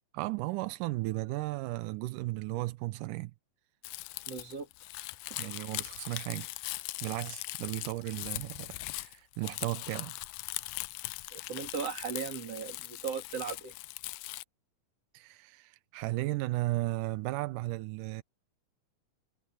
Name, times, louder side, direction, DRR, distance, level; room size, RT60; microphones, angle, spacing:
voice 1, 0.1-3.3 5.4-6.5 7.0-10.2 15.1-18.2, right 19 dB, 90° right, 2.2 m, -35 dB
Crumpling crinkling, 3.8-14.4, left 20 dB, 90° left, 2.2 m, -40 dB
voice 2, 4.3-4.7 11.3-13.7, right 6 dB, 50° right, 3.7 m, -37 dB
omnidirectional pair, 3.7 m